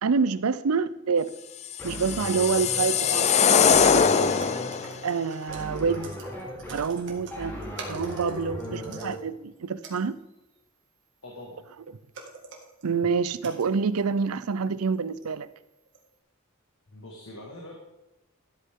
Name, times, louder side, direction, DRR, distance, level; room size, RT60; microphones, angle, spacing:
voice 1, 0.0-1.3 1.8-4.3 5.0-6.1 6.7-7.6 7.9-10.2 12.8-15.5, right 5 dB, 80° right, 0.5 m, -27 dB
sound 1, 1.7-4.9, left 6 dB, 30° left, 0.4 m, -22 dB
sound 2, 1.8-9.1, equal, 10° left, 3.5 m, -38 dB
sound 3, 2.1-2.2 2.5-2.6 3.3-9.2 9.5-9.6 9.8-10.5 11.7-11.8 12.1-12.8 13.3-14.1 14.9-15.6 15.9-16.1, right 4 dB, 60° right, 2.1 m, -46 dB
voice 2, 11.2-11.7 16.9-17.8, left 1 dB, 70° left, 1.9 m, -43 dB
13.5 x 8.4 x 3.7 m
head